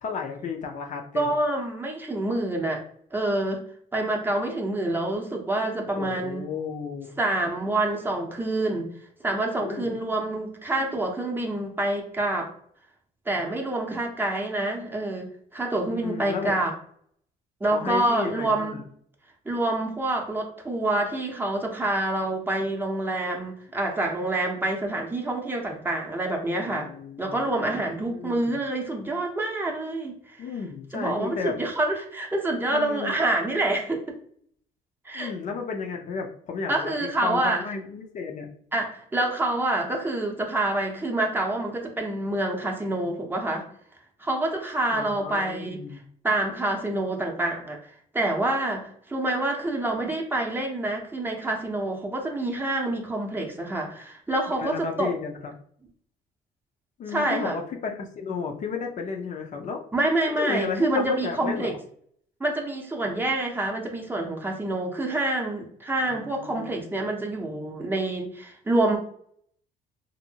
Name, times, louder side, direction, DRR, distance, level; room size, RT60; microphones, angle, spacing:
voice 1, 0.0-1.3 6.0-7.1 9.6-9.9 15.9-16.5 17.7-18.8 26.5-27.9 28.2-28.6 30.4-31.6 32.7-33.1 35.1-38.5 44.9-46.0 53.3-53.5 54.5-55.5 57.0-59.8 60.4-61.7 66.0-67.1, left 5 dB, 45° left, 3 dB, 0.5 m, -33 dB
voice 2, 1.1-2.8 3.1-3.6 3.9-6.4 7.2-8.9 9.2-12.5 13.3-16.7 17.6-18.8 19.5-26.9 27.2-30.4 30.9-34.1 35.0-35.3 36.7-37.6 38.7-43.7 44.2-45.8 46.2-47.8 48.1-55.1 57.1-57.6 59.9-61.7 62.4-69.0, right 2 dB, 10° right, 0 dB, 0.6 m, -27 dB
2.7 x 2.5 x 2.7 m, 0.62 s
cardioid pair, 110°, 17 cm